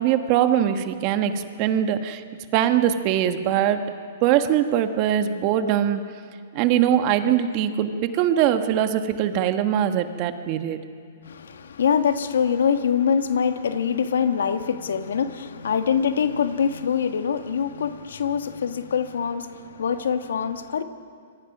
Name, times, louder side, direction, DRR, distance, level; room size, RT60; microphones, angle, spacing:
voice 1, 0.0-2.2 2.5-3.8 4.2-6.0 6.5-10.8, right 10 dB, 40° right, 1.4 m, -22 dB
voice 2, 11.3-20.8, left 7 dB, 85° left, 1.4 m, -24 dB
26.5 x 22.5 x 6.0 m
hypercardioid pair, 145°, 0 cm